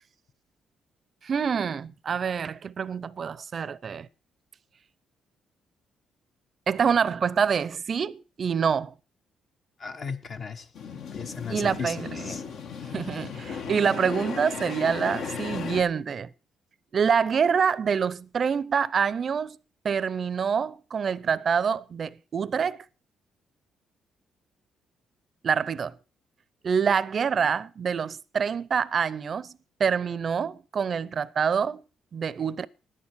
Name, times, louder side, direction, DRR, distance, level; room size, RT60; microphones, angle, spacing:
voice 1, 1.2-4.1 6.7-8.9 11.5-12.4 12.9-16.3 16.9-19.6 19.8-22.8 25.4-26.0 26.6-29.5 29.8-31.8 32.1-32.7, right 6 dB, 50° right, 0.6 m, -26 dB
voice 2, 9.8-10.7 11.1-12.4, left 5 dB, 50° left, 1.1 m, -36 dB
sound 1, 10.8-15.8, left 6 dB, 75° left, 1.7 m, -36 dB
11.0 x 9.8 x 6.3 m
cardioid pair, 90°, 0 cm